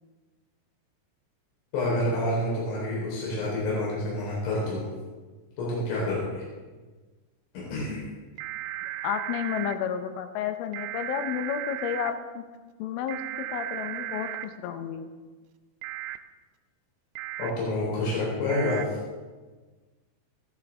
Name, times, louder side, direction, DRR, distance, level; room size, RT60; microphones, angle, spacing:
voice 1, 1.7-4.9 5.6-6.4 7.5-8.0 17.4-19.0, left 1 dB, 55° left, -5 dB, 5.7 m, -28 dB
sound 1, 8.4-9.8 10.7-12.1 13.1-14.5 15.8-16.2 17.2-17.5 18.5-18.8, right 14 dB, 85° right, 2.6 m, -35 dB
voice 2, 9.0-12.4 12.8-15.1, left 8 dB, 80° left, 8 dB, 3.2 m, -31 dB
15.0 x 13.0 x 3.6 m, 1.3 s
omnidirectional pair, 5.8 m